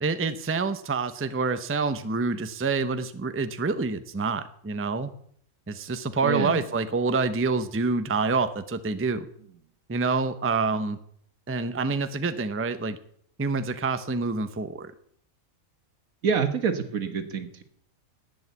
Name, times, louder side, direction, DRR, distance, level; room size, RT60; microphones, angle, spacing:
voice 1, 0.0-5.1 5.7-9.2 9.9-11.0 11.5-13.0 13.4-14.9, right 4 dB, 15° right, 11 dB, 0.5 m, -27 dB
voice 2, 6.2-6.6 16.2-17.6, right 6 dB, 85° right, 9 dB, 1.7 m, -27 dB
11.0 x 8.8 x 8.1 m, 0.64 s
omnidirectional pair, 1.4 m